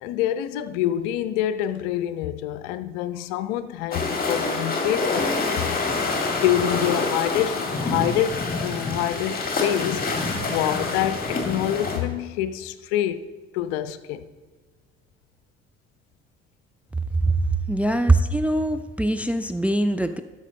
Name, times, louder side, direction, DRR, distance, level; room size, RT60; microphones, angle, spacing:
voice 1, 0.0-6.0 6.3-10.1 10.5-13.3 13.5-14.3, left 11 dB, 60° left, 0.5 m, -26 dB
sound 1, 3.9-12.0, left 3 dB, 30° left, 1.7 m, -26 dB
voice 2, 17.7-20.2, right 2 dB, 5° right, 0.3 m, -22 dB
12.5 x 5.4 x 3.8 m
figure-of-eight pair, 50°, 32 cm